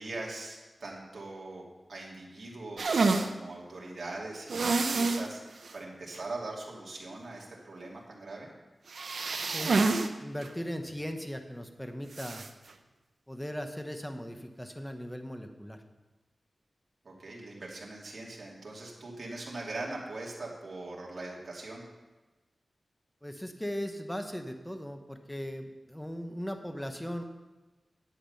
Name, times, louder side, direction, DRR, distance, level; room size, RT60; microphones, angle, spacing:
voice 1, 0.0-8.5 17.0-21.9, right 2 dB, 60° right, -3 dB, 2.7 m, -41 dB
sound 1, 2.8-3.3 4.5-5.3 5.6-5.7 6.1-6.2 8.9-10.1 10.4-10.5 12.1-12.5, right 3 dB, 80° right, 0.7 m, -27 dB
voice 2, 10.2-12.4 13.3-15.8 23.2-27.2, equal, 5° left, 6 dB, 1.1 m, -38 dB
10.5 x 8.4 x 5.6 m, 1.2 s
wide cardioid pair, 75°, 0 cm